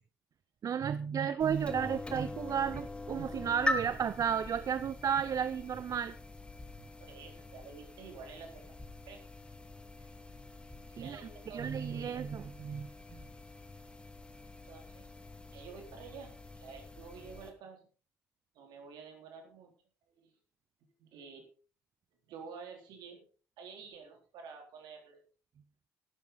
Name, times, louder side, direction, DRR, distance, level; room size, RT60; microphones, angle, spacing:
voice 1, 0.6-6.2 11.0-11.2 11.5-13.2, right 7 dB, 45° right, 16 dB, 0.6 m, -33 dB
sound 1, 1.4-17.5, left 2 dB, 15° left, 2.5 m, -43 dB
voice 2, 7.0-8.6 9.1-9.2 11.0-12.2 14.6-15.1 15.5-16.3 16.6-17.9 18.5-19.7 20.2-20.3 21.0-21.4 22.3-23.3 23.6-25.2, right 5 dB, 65° right, 2 dB, 4.0 m, -50 dB
13.0 x 12.0 x 3.9 m, 0.39 s
hypercardioid pair, 45°, 8 cm